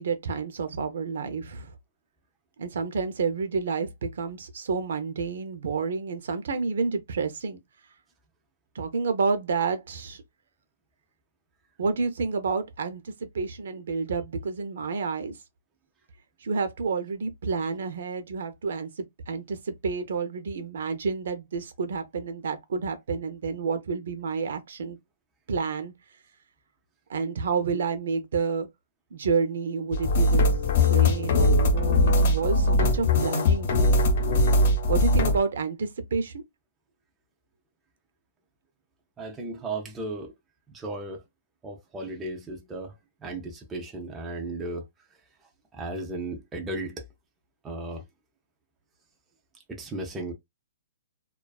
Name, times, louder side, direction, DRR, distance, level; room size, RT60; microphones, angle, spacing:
voice 1, 0.0-1.7 2.6-7.6 8.7-10.2 11.8-15.3 16.4-25.0 25.5-25.9 27.1-28.7 29.1-30.4 30.8-33.7 34.9-36.4, right 5 dB, 65° right, 0.6 m, -29 dB
sound 1, 29.9-35.4, left 2 dB, 40° left, 0.7 m, -21 dB
voice 2, 39.2-40.3 40.7-41.2 41.6-47.1 47.6-48.0 49.7-50.3, right 2 dB, 10° right, 0.4 m, -36 dB
2.4 x 2.3 x 2.3 m
hypercardioid pair, 170°, 0 cm